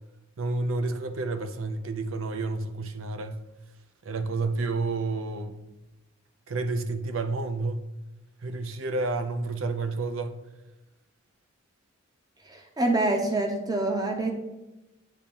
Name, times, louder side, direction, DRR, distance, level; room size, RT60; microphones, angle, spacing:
voice 1, 0.4-3.4 4.0-5.6 6.5-7.8 8.4-10.4, right 3 dB, 70° right, 0.6 m, -30 dB
voice 2, 12.4-14.3, right 2 dB, 20° right, 0.8 m, -26 dB
8.6 x 2.9 x 5.2 m
head